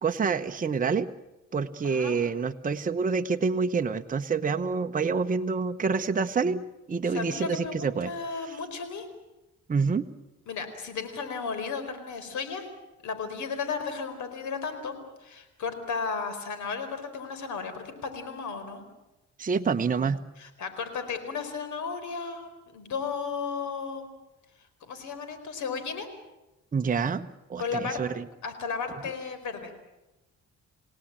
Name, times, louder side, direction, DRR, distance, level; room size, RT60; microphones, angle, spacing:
voice 1, 0.0-1.1 1.5-8.1 8.4-8.6 9.7-10.1 19.4-20.2 26.7-28.2, right 5 dB, 25° right, 6 dB, 1.0 m, -27 dB
voice 2, 1.8-2.2 7.1-9.1 10.5-12.7 13.0-14.9 15.2-18.8 20.4-24.0 24.8-26.1 27.6-28.0 28.4-29.7, left 5 dB, 75° left, 10 dB, 4.7 m, -34 dB
29.0 x 18.0 x 8.9 m, 0.99 s
cardioid pair, 90°, 30 cm